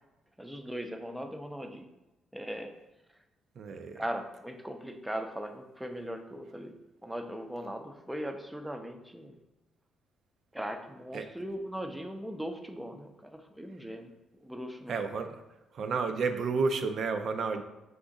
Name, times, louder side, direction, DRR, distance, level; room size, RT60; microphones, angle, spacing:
voice 1, 0.4-1.9 2.3-2.7 3.9-6.7 7.0-9.3 10.5-14.1 14.4-15.0, equal, 5° right, 5 dB, 0.5 m, -39 dB
voice 2, 3.6-4.0 11.1-11.3 14.9-15.4 15.7-17.6, right 4 dB, 60° right, 7 dB, 0.3 m, -31 dB
4.9 x 2.5 x 3.8 m, 1.0 s
cardioid pair, 90°, 0 cm